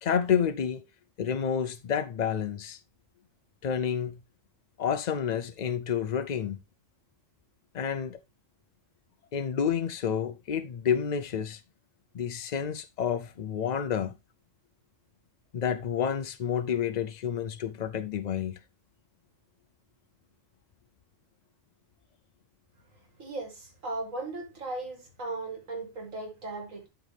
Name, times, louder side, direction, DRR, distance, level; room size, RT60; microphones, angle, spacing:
voice 1, 0.0-0.8 1.2-2.8 3.6-4.2 4.8-6.6 7.7-8.2 9.3-11.6 12.1-14.1 15.5-18.6, left 8 dB, 65° left, 0.4 m, -29 dB
voice 2, 23.2-26.9, right 2 dB, 80° right, 2.7 m, -37 dB
12.0 x 4.6 x 3.3 m
omnidirectional pair, 1.4 m